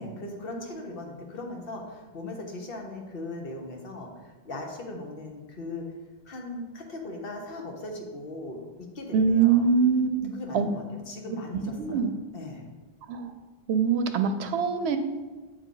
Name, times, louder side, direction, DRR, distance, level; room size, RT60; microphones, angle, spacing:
voice 1, 0.0-5.9 6.3-9.7 10.3-12.0 12.3-12.7, left 2 dB, 65° left, 2 dB, 1.1 m, -39 dB
voice 2, 9.1-10.7 11.8-12.1 13.1-13.3 13.7-15.0, right 6 dB, 90° right, 8 dB, 0.8 m, -23 dB
8.1 x 3.3 x 3.8 m, 1.3 s
omnidirectional pair, 1.1 m